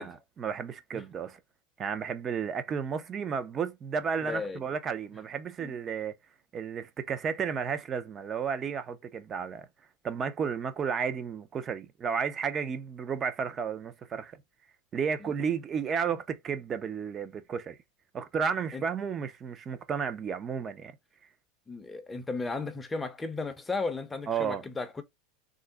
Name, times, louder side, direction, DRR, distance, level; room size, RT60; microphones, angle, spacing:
voice 1, 0.0-1.4 1.8-6.1 6.5-9.7 10.0-14.4 14.9-17.8 18.1-20.9 24.3-24.6, right 6 dB, 30° right, 0.5 m, -32 dB
voice 2, 4.3-4.6 5.6-5.8 15.2-15.3 18.7-18.8 21.7-25.0, left 3 dB, 15° left, 0.6 m, -35 dB
3.7 x 2.0 x 3.4 m
supercardioid pair, 120°, 0 cm